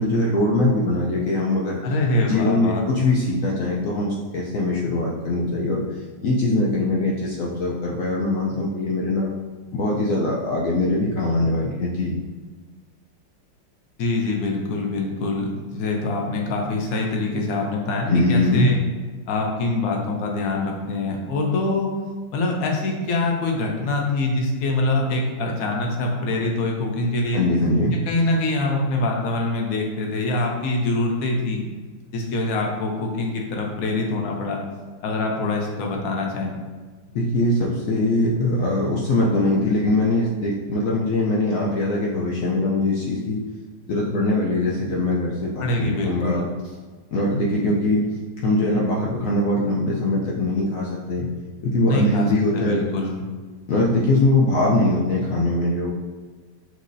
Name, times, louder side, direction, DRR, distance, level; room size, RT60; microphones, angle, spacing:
voice 1, 0.0-1.8 2.2-5.8 6.2-9.3 9.7-12.1 18.1-18.7 27.3-27.9 37.1-43.4 43.9-46.5 47.1-48.0 48.4-51.3 51.6-52.8 53.7-55.9, left 2 dB, 80° left, -4 dB, 0.7 m, -22 dB
voice 2, 1.8-2.8 14.0-18.8 19.3-21.9 22.3-27.4 27.9-31.6 32.1-34.6 35.0-36.6 45.6-46.5 51.9-52.3 52.5-53.2, left 2 dB, 60° left, 0 dB, 1.0 m, -24 dB
6.1 x 2.8 x 2.6 m, 1.4 s
omnidirectional pair, 2.0 m